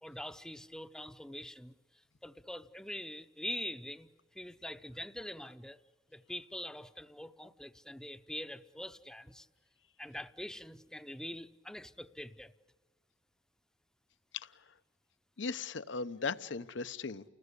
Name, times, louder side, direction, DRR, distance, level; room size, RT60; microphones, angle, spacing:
voice 1, 0.0-1.7 2.2-4.1 4.3-5.8 6.1-9.5 10.0-12.5, left 1 dB, 5° left, 0.7 m, -44 dB
voice 2, 15.4-17.2, left 4 dB, 70° left, 0.8 m, -37 dB
30.0 x 20.0 x 8.3 m
head